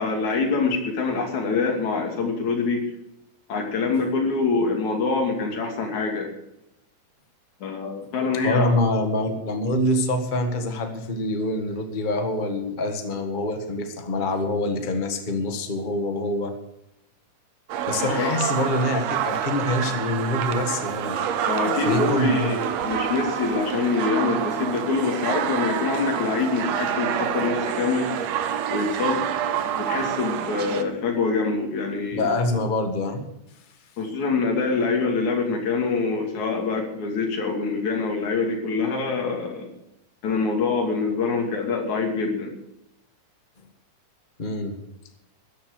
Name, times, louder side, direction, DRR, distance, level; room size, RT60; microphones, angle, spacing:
voice 1, 0.0-2.8 3.5-6.3 7.6-8.7 18.0-18.3 21.5-28.4 28.7-32.3 34.0-39.7 40.2-42.5, left 4 dB, 65° left, 2 dB, 4.0 m, -25 dB
voice 2, 8.4-16.5 17.9-21.3 21.6-22.6 32.1-33.2 44.4-44.8, left 1 dB, 45° left, 5 dB, 0.6 m, -25 dB
sound 1, 17.7-30.8, right 9 dB, 70° right, 1.9 m, -27 dB
13.5 x 11.5 x 6.5 m, 0.86 s
omnidirectional pair, 3.7 m